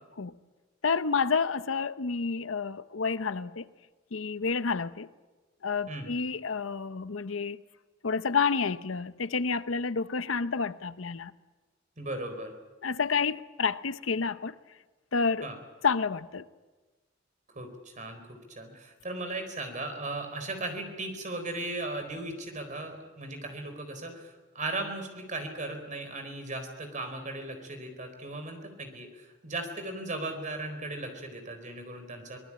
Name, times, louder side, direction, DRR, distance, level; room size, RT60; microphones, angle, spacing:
voice 1, 0.8-3.7 4.1-5.1 5.6-7.6 8.0-11.3 12.8-14.5 15.1-15.5 15.8-16.4, left 5 dB, 85° left, 0.8 m, -29 dB
voice 2, 12.0-12.5 15.4-15.6 17.5-18.2 18.6-32.4, right 2 dB, 40° right, 4.3 m, -37 dB
24.0 x 19.5 x 8.7 m
head